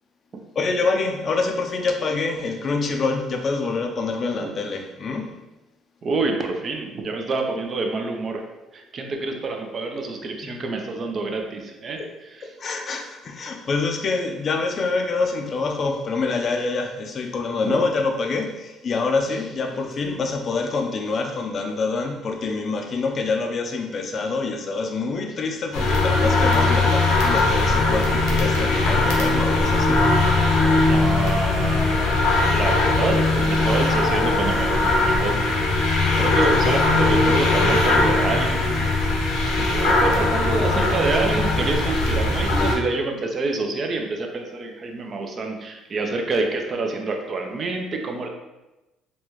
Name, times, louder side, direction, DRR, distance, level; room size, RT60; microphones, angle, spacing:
voice 1, 0.6-5.4 10.4-10.5 12.4-30.1 33.7-33.8 36.5-36.6, left 3 dB, 40° left, 3 dB, 0.5 m, -26 dB
voice 2, 6.0-8.4 8.7-12.0 17.6-17.8 30.9-35.6 36.2-38.9 39.7-48.3, right 3 dB, 40° right, 3 dB, 0.6 m, -27 dB
sound 1, 25.7-42.7, left 2 dB, 90° left, 0.9 m, -20 dB
4.0 x 2.3 x 3.1 m, 1.0 s
cardioid pair, 95°, 0 cm